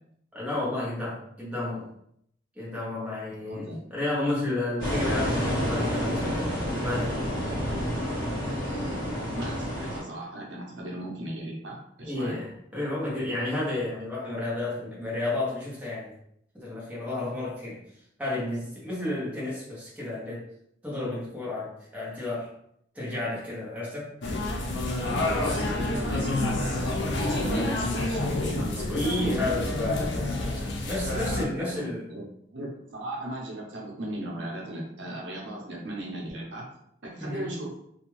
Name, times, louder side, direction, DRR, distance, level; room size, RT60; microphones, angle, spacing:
voice 1, 0.3-1.9 2.6-7.2 12.0-16.2 16.5-17.8 18.2-20.4 20.8-22.5 22.9-24.1 25.3-25.6 28.7-32.1 37.2-37.5, left 2 dB, 10° right, -7 dB, 1.0 m, -32 dB
voice 2, 3.5-3.8 8.5-12.4 25.4-28.8 31.1-32.2 32.5-36.6 37.0-37.7, right 1 dB, 85° right, -2 dB, 0.8 m, -37 dB
sound 1, 4.8-10.0, equal, 25° left, 1.4 m, -29 dB
sound 2, 24.2-31.4, left 2 dB, 70° left, 0.6 m, -28 dB
2.6 x 2.3 x 3.1 m, 0.71 s
head